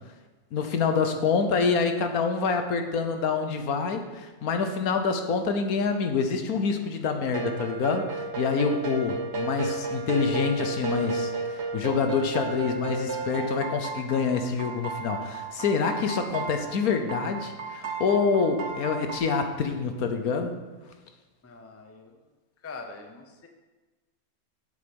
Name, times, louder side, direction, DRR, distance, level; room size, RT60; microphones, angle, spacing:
voice 1, 0.5-20.6, left 5 dB, 70° left, 6 dB, 1.3 m, -26 dB
sound 1, 7.2-19.2, right 4 dB, 45° right, 1.4 m, -33 dB
voice 2, 21.4-22.2 22.6-23.5, left 4 dB, 15° left, 4 dB, 0.6 m, -43 dB
8.6 x 8.2 x 5.3 m, 1.2 s
omnidirectional pair, 1.7 m